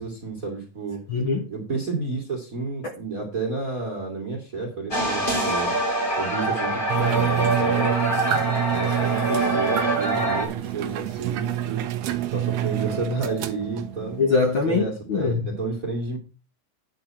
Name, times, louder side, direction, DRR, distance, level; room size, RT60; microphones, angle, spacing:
voice 1, 0.0-1.0 1.5-5.7 6.2-8.0 8.7-11.9 12.3-14.2 14.7-16.2, right 3 dB, 25° right, 2.4 m, -30 dB
voice 2, 1.1-1.5 14.2-15.4, left 4 dB, 65° left, 1.2 m, -22 dB
sound 1, 4.9-10.5, right 1 dB, 15° left, 2.6 m, -24 dB
sound 2, 6.9-14.3, right 12 dB, 70° right, 1.6 m, -27 dB
9.8 x 8.8 x 4.3 m
omnidirectional pair, 3.8 m